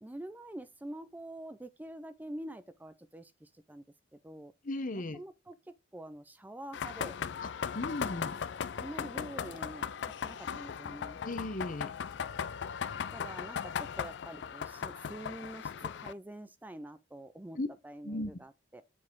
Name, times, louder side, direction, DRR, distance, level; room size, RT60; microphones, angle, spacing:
voice 1, 0.0-3.8 4.2-4.5 4.9-7.2 8.7-9.9 10.2-11.2 13.1-17.6 17.8-18.8, right 1 dB, 10° right, 0.4 m, -46 dB
voice 2, 4.6-5.2 7.4-7.5 7.7-8.4 11.2-11.9 17.6-17.7 18.0-18.3, left 2 dB, 45° left, 0.8 m, -36 dB
sound 1, 6.7-16.1, left 7 dB, 70° left, 0.4 m, -38 dB
7.4 x 4.1 x 4.5 m
head